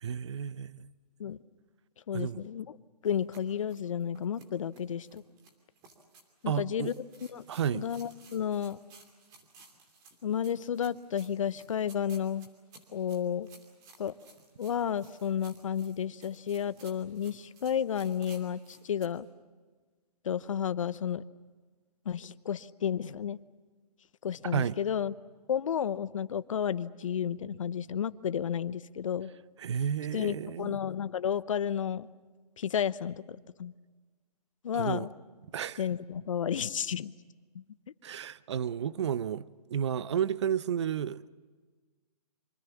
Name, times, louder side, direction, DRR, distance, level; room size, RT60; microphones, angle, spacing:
voice 1, 0.0-0.9 2.1-2.5 6.5-6.9 7.5-7.8 24.5-24.8 29.6-30.8 34.7-35.1 35.5-35.8 38.0-39.4 39.7-41.3, right 8 dB, 45° right, 0.7 m, -32 dB
voice 2, 2.1-2.7 3.0-5.2 6.4-6.9 7.3-7.4 7.7-8.8 10.2-12.5 12.9-13.5 14.0-14.1 14.6-19.3 20.2-21.2 22.1-23.4 24.2-25.1 25.5-29.3 30.1-32.1 32.6-33.7 34.6-35.1 35.8-37.1 37.5-37.6, left 8 dB, 55° left, 0.9 m, -32 dB
sound 1, 3.0-19.1, right 3 dB, 15° right, 2.8 m, -57 dB
26.0 x 25.0 x 7.1 m
hypercardioid pair, 160°, 20 cm